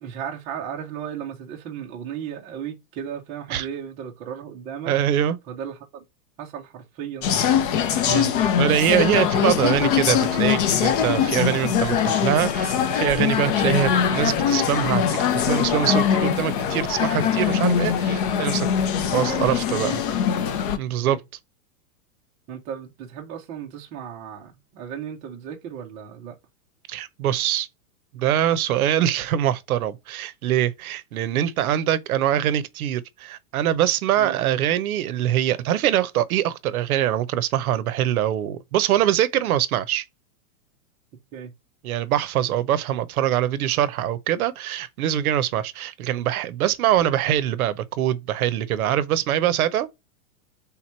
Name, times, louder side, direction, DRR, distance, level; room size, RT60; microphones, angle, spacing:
voice 1, 0.0-5.0 5.5-6.0 6.4-7.6 13.6-13.7 19.0-20.2 21.0-21.2 22.5-26.4 34.2-34.4 41.3-41.5, right 8 dB, 15° right, 0.5 m, -35 dB
voice 2, 4.9-5.4 8.0-8.3 8.6-18.7 19.1-19.9 20.8-21.2 26.9-27.7 28.1-40.0 41.8-49.9, right 11 dB, 70° right, 0.7 m, -23 dB
Leningradsky railway station hall echoes. Moscow, 7.2-20.8, left 8 dB, 35° left, 0.5 m, -22 dB
3.5 x 3.0 x 4.3 m
supercardioid pair, 155°, 46 cm